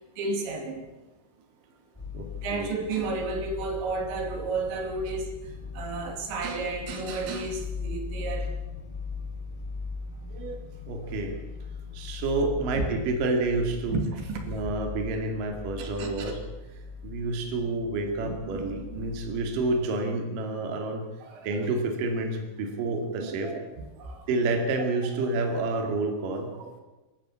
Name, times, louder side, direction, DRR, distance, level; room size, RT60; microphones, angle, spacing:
voice 1, 0.2-0.8 2.4-5.3 5.7-8.5 10.2-10.6 12.8-12.9 13.9-14.5 15.8-16.3 18.2-19.1 21.2-21.7 23.2-24.3 24.8-24.9 25.2-25.3 26.3-26.8, right 3 dB, 75° right, 4 dB, 4.8 m, -33 dB
sound 1, 1.9-19.9, left 5 dB, 10° left, 1.4 m, -39 dB
voice 2, 2.1-2.7 10.9-11.4 11.9-14.0 14.5-16.4 17.0-21.1 21.4-23.5 24.3-26.5, right 2 dB, 50° right, 3 dB, 3.7 m, -29 dB
24.5 x 13.5 x 8.5 m, 1.1 s
omnidirectional pair, 5.3 m